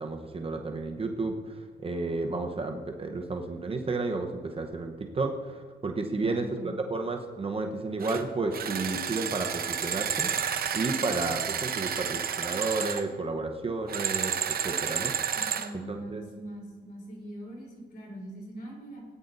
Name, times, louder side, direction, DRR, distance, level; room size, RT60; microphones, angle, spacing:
voice 1, 0.0-10.3 10.7-14.4 14.6-15.1 15.7-16.2, right 3 dB, 30° right, 4 dB, 0.9 m, -32 dB
voice 2, 6.2-6.7 15.3-19.1, right 1 dB, 45° left, -1 dB, 3.8 m, -42 dB
sound 1, 8.0-8.2 8.5-13.0 13.9-15.7, right 8 dB, 50° right, 0.8 m, -31 dB
17.5 x 9.4 x 2.6 m, 1.5 s
cardioid pair, 90°, 20 cm